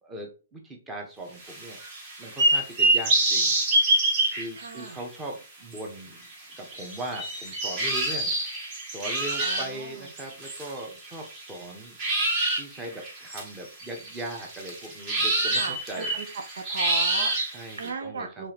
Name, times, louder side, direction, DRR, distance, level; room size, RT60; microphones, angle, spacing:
voice 1, 0.0-1.8 2.2-3.5 4.3-6.3 6.6-8.3 8.9-12.0 12.5-16.2 17.5-18.4, right 1 dB, 10° right, 1 dB, 1.1 m, -39 dB
sound 1, 1.4-5.0 5.7-5.8 6.5-11.6 12.0-17.9, right 2 dB, 30° right, 1.6 m, -26 dB
voice 2, 4.6-5.0 9.4-10.1 15.6-16.2 16.5-18.5, right 5 dB, 70° right, 7 dB, 0.7 m, -37 dB
4.7 x 3.5 x 2.9 m, 0.34 s
hypercardioid pair, 145°, 0 cm